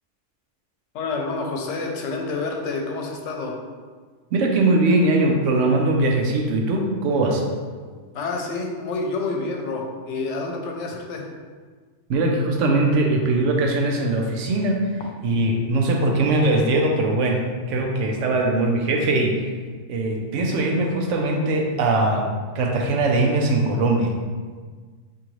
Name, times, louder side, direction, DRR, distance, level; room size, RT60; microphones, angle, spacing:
voice 1, 0.9-3.5 8.1-11.3, left 3 dB, 75° left, 2 dB, 0.9 m, -28 dB
voice 2, 4.3-7.4 12.1-14.8 15.2-17.4 17.7-19.4 19.9-22.3 22.5-24.1, right 2 dB, 80° right, 1 dB, 0.9 m, -21 dB
3.7 x 2.7 x 3.0 m, 1.5 s
omnidirectional pair, 1.2 m